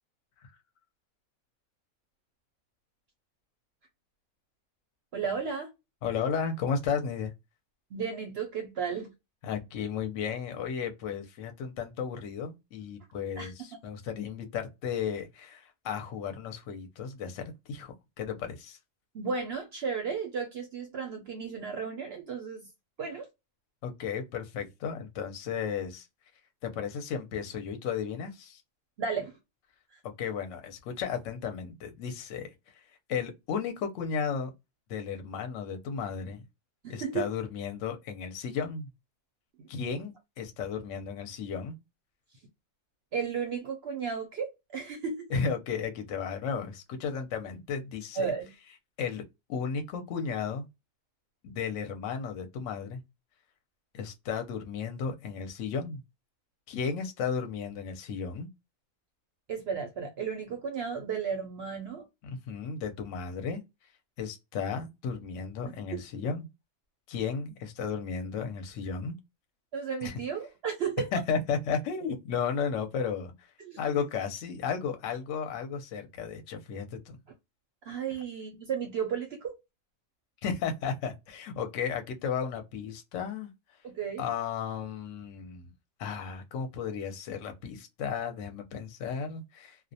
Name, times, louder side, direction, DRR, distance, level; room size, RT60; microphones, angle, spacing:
voice 1, 5.1-5.7 7.9-9.1 13.4-13.5 19.1-22.7 23.0-23.3 29.0-29.4 36.8-37.3 43.1-45.3 48.1-48.5 59.5-62.1 69.7-71.1 73.6-74.0 77.9-79.6 83.8-84.3, right 6 dB, 60° right, 0.7 m, -34 dB
voice 2, 6.0-7.3 9.4-18.8 23.8-26.1 26.6-28.6 30.2-32.5 33.1-34.5 34.9-36.4 36.9-38.9 39.7-41.8 45.3-48.3 49.0-50.7 51.4-53.0 53.9-56.0 56.7-58.5 62.2-63.6 64.2-66.5 67.1-69.2 70.0-70.2 71.1-73.5 73.8-77.2 80.4-83.5 84.2-85.7 86.0-89.8, left 6 dB, 70° left, 0.9 m, -34 dB
2.3 x 2.1 x 2.6 m
omnidirectional pair, 1.5 m